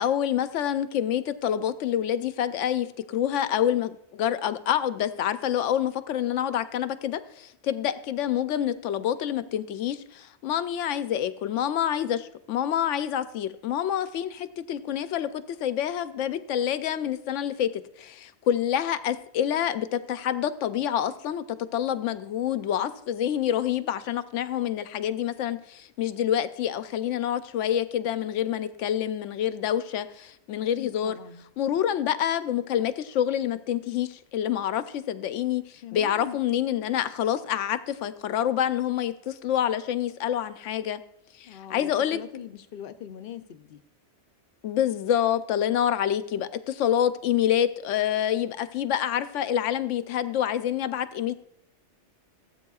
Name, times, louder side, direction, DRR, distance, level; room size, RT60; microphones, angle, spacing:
voice 1, 0.0-17.7 18.0-21.4 21.7-31.2 31.6-41.0 41.4-42.2 44.6-51.3, left 10 dB, 90° left, 0.9 m, -27 dB
voice 2, 30.5-31.5 35.8-36.4 41.5-43.8, left 9 dB, 60° left, 0.7 m, -41 dB
15.5 x 8.5 x 2.3 m
omnidirectional pair, 1.2 m